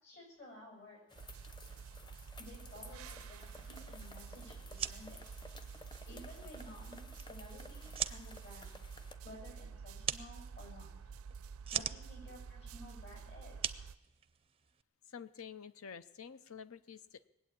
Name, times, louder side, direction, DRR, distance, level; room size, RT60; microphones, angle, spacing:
voice 1, 0.0-1.0 2.4-5.2 6.1-8.8 9.2-10.9 11.7-13.7, left 1 dB, 55° left, -1 dB, 6.9 m, -54 dB
sound 1, 1.1-9.1, left 2 dB, 20° left, 0.9 m, -55 dB
sound 2, 1.2-14.0, right 5 dB, 85° right, 0.5 m, -50 dB
sound 3, 4.7-14.8, right 9 dB, 25° right, 0.5 m, -43 dB
voice 2, 15.1-17.3, left 7 dB, 85° left, 14 dB, 0.7 m, -49 dB
20.0 x 8.4 x 8.5 m, 0.92 s
head